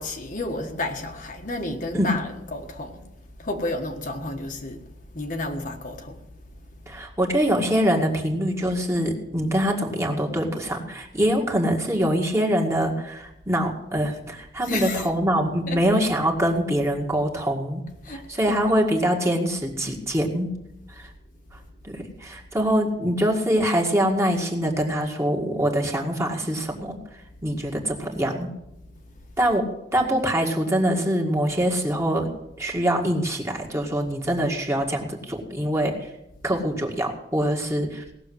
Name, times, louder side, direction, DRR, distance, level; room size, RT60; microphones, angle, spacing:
voice 1, 0.0-3.1 3.4-6.7 14.6-15.1 15.7-15.8 18.0-18.6 28.8-29.2, left 2 dB, 50° left, 1.5 m, -32 dB
voice 2, 6.9-17.8 18.1-20.5 20.9-21.1 21.8-27.0 27.4-28.5 29.4-32.3 32.6-36.1 36.4-38.0, equal, 15° right, 2.0 m, -24 dB
18.0 x 6.9 x 7.9 m
head